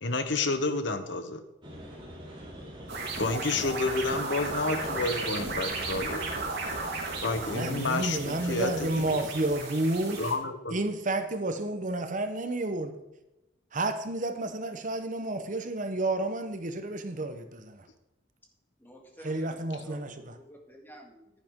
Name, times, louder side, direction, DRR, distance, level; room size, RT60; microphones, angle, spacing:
voice 1, 0.0-1.4 3.2-6.2 7.2-9.2 10.2-10.7, left 3 dB, 70° left, 9 dB, 1.0 m, -30 dB
sound 1, 1.6-9.1, equal, 25° right, 2.8 m, -44 dB
sound 2, 2.9-10.3, right 3 dB, 60° right, 3.3 m, -35 dB
voice 2, 7.5-10.2 10.7-13.0 13.7-17.9 19.2-20.3, right 2 dB, 40° right, 8 dB, 0.9 m, -31 dB
voice 3, 18.8-21.4, right 1 dB, 10° left, 1 dB, 1.9 m, -51 dB
10.5 x 9.8 x 3.7 m, 0.92 s
head